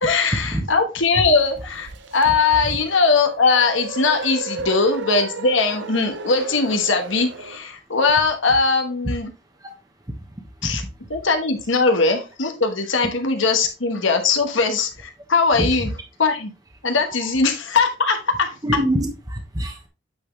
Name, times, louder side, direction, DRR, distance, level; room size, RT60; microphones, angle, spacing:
voice 1, 0.0-9.3 10.6-10.8 11.1-15.9 16.2-16.5 16.8-18.6, left 4 dB, 75° left, 1.3 m, -20 dB
sound 1, 1.0-7.6, right 3 dB, 65° right, 0.7 m, -34 dB
voice 2, 18.6-19.9, right 1 dB, 20° right, 1.1 m, -25 dB
8.5 x 4.3 x 3.2 m
head